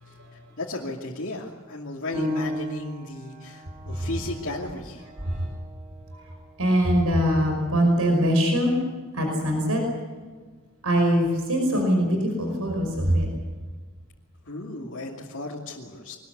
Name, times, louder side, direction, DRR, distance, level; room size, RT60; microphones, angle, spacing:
voice 1, 0.0-0.5 3.9-4.1 5.2-5.5 6.1-6.3 6.6-8.7 9.1-9.8 10.8-13.3, equal, 75° right, 3 dB, 5.4 m, -23 dB
voice 2, 0.6-5.1 14.5-16.1, left 2 dB, 60° left, -4 dB, 2.7 m, -34 dB
Piano, 2.1-7.3 7.8-7.9 8.5-9.0, left 1 dB, 20° right, 7.8 m, -36 dB
24.0 x 20.5 x 8.2 m, 1.4 s
head